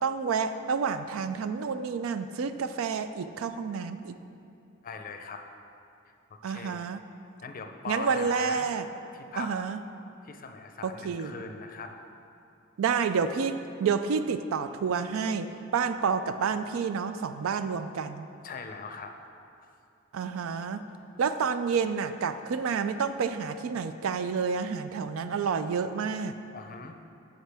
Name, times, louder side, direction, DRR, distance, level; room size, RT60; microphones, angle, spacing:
voice 1, 0.0-4.1 6.4-7.0 7.9-8.9 9.4-9.8 10.8-11.4 12.8-18.3 20.1-20.8 21.2-26.4, right 6 dB, 75° right, 11 dB, 0.4 m, -29 dB
voice 2, 4.8-5.4 6.5-6.8 7.4-8.7 9.1-9.5 10.2-11.9 18.4-19.2 26.5-27.0, left 4 dB, 40° left, 5 dB, 0.5 m, -40 dB
9.5 x 6.5 x 3.4 m, 2.6 s
head